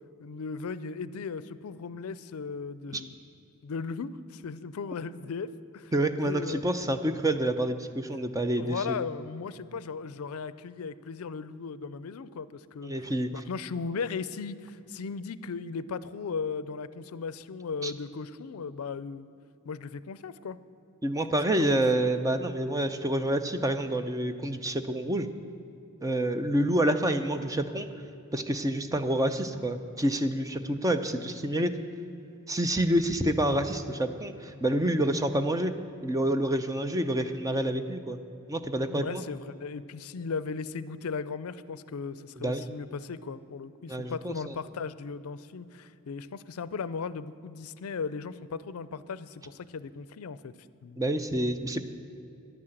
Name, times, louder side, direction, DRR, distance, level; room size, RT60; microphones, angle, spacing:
voice 1, 0.2-3.1 3.6-5.9 6.2-6.6 8.6-12.9 13.3-19.3 19.6-20.6 21.6-21.8 26.6-26.8 38.9-50.5 50.8-51.0, left 5 dB, 75° left, 16 dB, 0.4 m, -37 dB
voice 2, 5.9-9.0 12.8-13.3 17.8-17.9 21.0-25.3 26.0-27.9 28.3-31.7 32.5-35.7 36.0-38.2 38.5-39.2 42.4-42.7 43.9-44.6 51.0-51.8, right 1 dB, 15° right, 8 dB, 0.6 m, -28 dB
10.5 x 9.7 x 7.8 m, 2.7 s
head